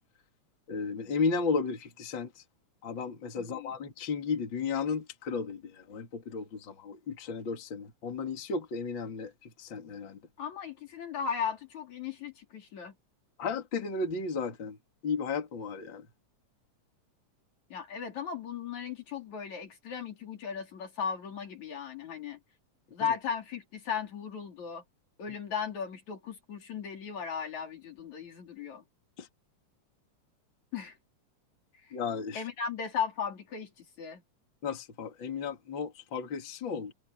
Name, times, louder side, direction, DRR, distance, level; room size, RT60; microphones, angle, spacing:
voice 1, 0.7-2.4 2.8-10.2 13.4-14.8 15.0-16.1 29.2-29.3 31.9-32.4 34.6-36.9, left 5 dB, 40° left, 3.0 m, -34 dB
voice 2, 3.4-3.7 10.4-12.9 17.7-22.4 22.9-24.8 25.2-28.8 30.7-31.0 32.3-34.2, left 7 dB, 70° left, 4.6 m, -36 dB
omnidirectional pair, 3.5 m